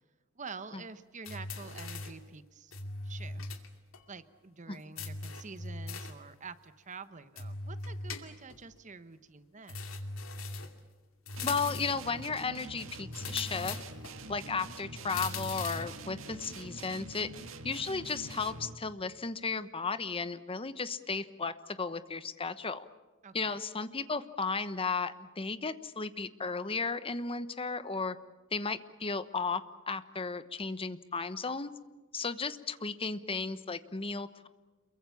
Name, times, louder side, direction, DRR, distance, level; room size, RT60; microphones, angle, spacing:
voice 1, 0.3-2.7 3.0-3.4 4.1-9.8 23.2-23.6, right 4 dB, 35° right, 12 dB, 1.1 m, -47 dB
sound 1, 1.2-2.2 2.7-3.7 3.9-4.0 5.0-6.2 7.4-8.6 9.7-10.8 11.3-12.1 13.1-14.2 15.1-16.0, left 3 dB, 90° left, 2.5 m, -40 dB
voice 2, 11.4-13.8 14.3-17.3 17.6-22.8 23.3-28.2 28.5-31.7 32.1-34.5, left 4 dB, 30° left, 13 dB, 1.0 m, -34 dB
sound 2, 11.4-18.9, right 2 dB, 75° right, 2.1 m, -45 dB
28.0 x 23.0 x 7.1 m, 1.2 s
head